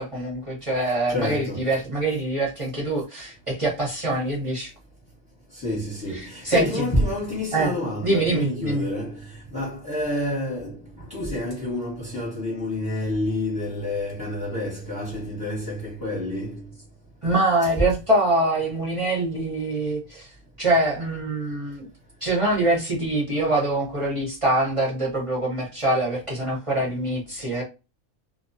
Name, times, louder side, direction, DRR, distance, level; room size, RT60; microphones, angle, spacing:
voice 1, 0.0-4.7 6.1-6.8 7.5-7.7 8.0-8.9 17.2-20.3 20.6-21.9 22.2-27.6, right 2 dB, 30° right, 0.6 m, -24 dB
voice 2, 1.1-1.7 5.5-16.6, left 1 dB, 15° left, 0.8 m, -28 dB
2.3 x 2.2 x 2.5 m
omnidirectional pair, 1.6 m